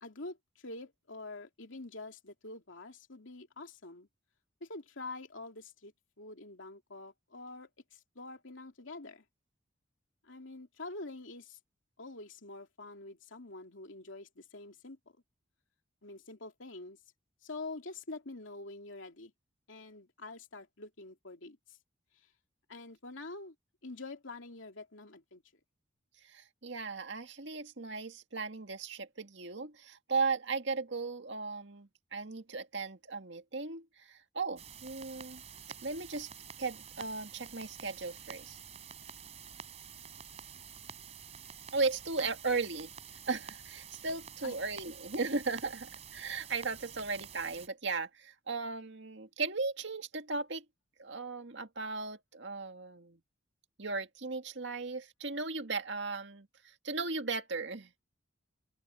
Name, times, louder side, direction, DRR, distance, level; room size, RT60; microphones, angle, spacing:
voice 1, 0.0-4.1 4.6-5.9 6.2-9.2 10.2-11.6 12.0-15.2 16.0-17.0 17.4-19.3 19.7-21.8 22.2-22.3 22.7-23.5 23.8-25.4 42.2-42.3 44.4-44.6, left 2 dB, 75° left, 2.6 m, -46 dB
voice 2, 26.2-35.4 35.8-36.3 36.6-38.6 41.7-42.9 43.3-50.6 51.0-53.2 53.8-57.9, right 4 dB, 65° right, 2.0 m, -36 dB
sound 1, 34.6-47.7, right 7 dB, 35° right, 3.8 m, -49 dB
open air
head